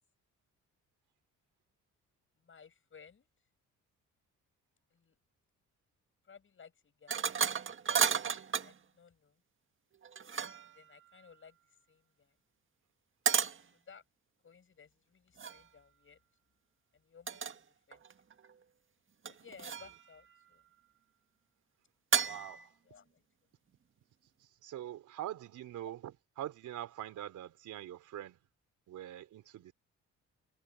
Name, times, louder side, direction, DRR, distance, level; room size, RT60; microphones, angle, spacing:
voice 1, 2.4-3.3 4.9-5.2 6.2-7.2 8.5-9.4 10.7-11.6 11.9-12.3 13.7-14.0 14.4-16.2 16.9-18.0 19.3-20.6 22.8-23.3 25.8-25.9, left 6 dB, 45° left, 7.0 m, -58 dB
sound 1, 7.1-8.7 10.0-10.8 13.3-13.6 15.4-15.6 17.3-17.6 17.9-18.5 19.3-20.0 22.1-22.7, right 7 dB, 40° right, 1.7 m, -32 dB
voice 2, 22.2-22.7 24.6-26.0 26.4-28.4 28.9-29.7, right 12 dB, 80° right, 3.8 m, -43 dB
cardioid pair, 90°, 30 cm